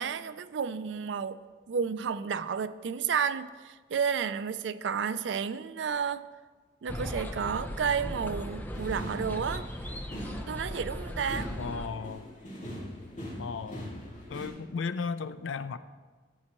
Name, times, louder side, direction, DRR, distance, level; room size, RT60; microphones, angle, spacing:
voice 1, 0.0-1.4 1.7-6.3 6.8-9.7 10.5-11.5, right 6 dB, 70° right, 14 dB, 0.4 m, -31 dB
sound 1, 6.9-11.9, equal, 10° left, 0.6 m, -37 dB
sound 2, 8.7-14.5, equal, 40° left, 2.4 m, -42 dB
voice 2, 11.6-12.2 13.4-13.9 14.3-15.8, left 5 dB, 85° left, 13 dB, 0.4 m, -35 dB
14.0 x 8.7 x 3.0 m, 1.4 s
head